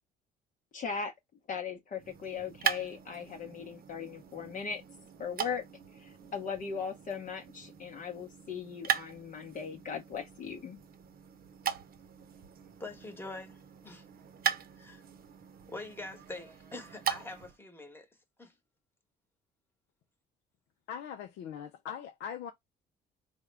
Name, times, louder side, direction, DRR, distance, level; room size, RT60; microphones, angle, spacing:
voice 1, 0.7-1.1 1.5-4.8 5.2-5.6 5.9-10.8, left 6 dB, 45° left, 0.8 m, -38 dB
sound 1, 2.0-17.6, right 8 dB, 50° right, 0.7 m, -39 dB
voice 2, 12.8-14.0 14.8-15.0 15.7-18.1 18.4-18.5, left 2 dB, 10° left, 1.1 m, -44 dB
voice 3, 20.9-22.5, left 8 dB, 70° left, 0.5 m, -41 dB
3.5 x 2.2 x 3.3 m
supercardioid pair, 75°, 19 cm